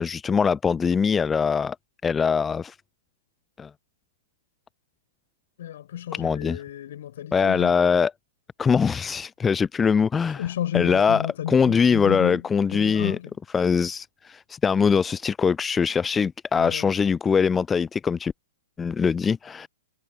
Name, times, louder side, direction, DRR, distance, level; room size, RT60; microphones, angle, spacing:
voice 1, 0.0-1.8 2.0-2.8 3.6-3.7 6.1-6.6 7.3-8.1 8.6-10.4 10.7-11.2 11.5-13.2 13.5-18.3 18.8-19.7, left 6 dB, 15° left, 0.4 m, -22 dB
voice 2, 5.6-7.9 10.3-13.3 16.6-16.9, left 11 dB, 55° left, 6.6 m, -32 dB
figure-of-eight pair, 110°, 0 cm